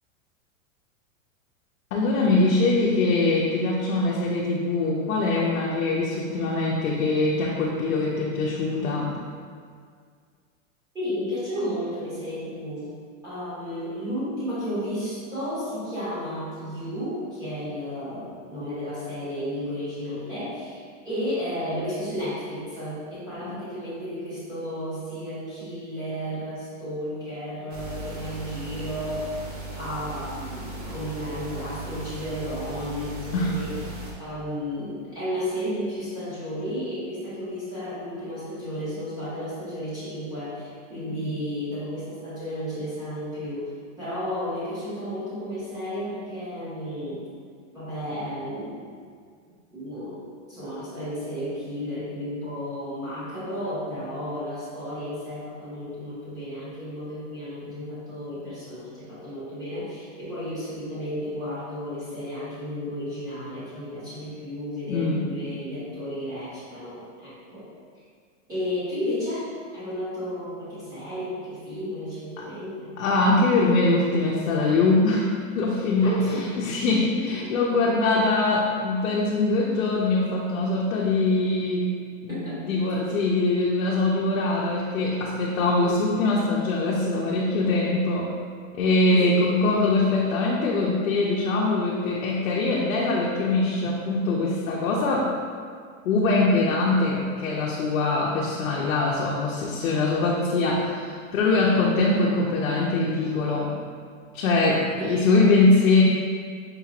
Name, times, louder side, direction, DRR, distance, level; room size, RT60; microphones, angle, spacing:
voice 1, 1.9-9.1 23.4-23.5 33.3-33.5 41.1-41.3 64.9-65.3 72.4-72.5 73.0-75.3 75.5-81.9 82.2-88.3 88.7-95.3 96.0-103.7 104.3-106.0, left 3 dB, 75° left, -4 dB, 0.7 m, -23 dB
voice 2, 10.9-12.9 13.2-29.4 29.8-33.8 34.2-43.7 44.0-47.3 47.7-48.9 49.7-67.6 68.5-69.5 69.7-72.9 76.0-76.5 77.2-77.4 82.3-82.6 85.7-85.9 89.1-89.5 101.8-102.0 105.0-105.4, equal, 10° right, -13 dB, 1.1 m, -33 dB
sound 1, 27.7-34.1, right 2 dB, 30° right, 0.4 m, -37 dB
4.9 x 2.9 x 2.4 m, 2.1 s
supercardioid pair, 170°, 40 cm